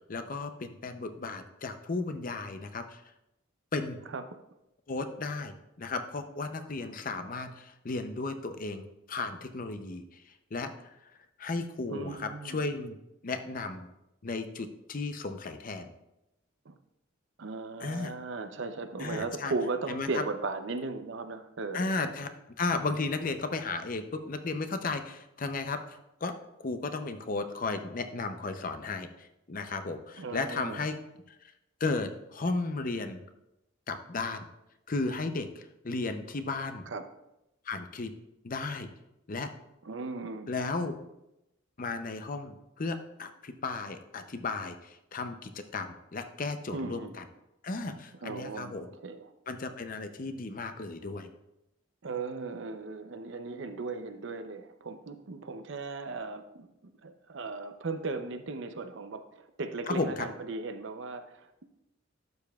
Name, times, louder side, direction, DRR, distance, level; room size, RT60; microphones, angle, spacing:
voice 1, 0.1-3.0 3.7-4.0 4.9-10.0 10.5-10.7 11.4-13.0 13.2-13.9 14.2-15.9 17.8-18.1 19.0-19.5 19.9-20.2 21.7-22.3 22.6-25.8 26.2-26.3 26.6-31.0 31.8-33.2 33.9-34.5 34.9-36.8 37.7-38.1 38.4-38.9 39.3-39.5 40.5-40.9 41.8-47.2 47.6-48.9 49.5-51.3 59.9-60.3, left 3 dB, 45° left, 8 dB, 0.6 m, -34 dB
voice 2, 11.9-12.6 16.7-16.8 17.4-22.0 30.2-30.8 36.9-37.1 39.8-40.5 46.7-47.2 48.2-49.3 52.0-61.6, right 3 dB, 65° right, 9 dB, 0.6 m, -37 dB
12.0 x 6.9 x 2.3 m, 0.88 s
head